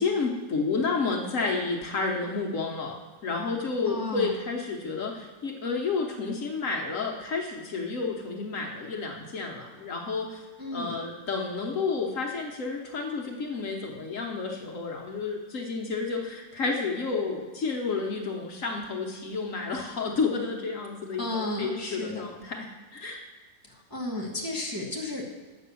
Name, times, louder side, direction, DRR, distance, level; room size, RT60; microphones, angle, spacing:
voice 1, 0.0-10.4 10.7-23.2, left 4 dB, 55° left, 1 dB, 1.4 m, -31 dB
voice 2, 3.8-4.3 10.6-10.9 21.2-22.3 23.6-25.4, left 2 dB, 15° right, -3 dB, 1.1 m, -33 dB
8.3 x 6.0 x 6.9 m, 1.3 s
omnidirectional pair, 1.7 m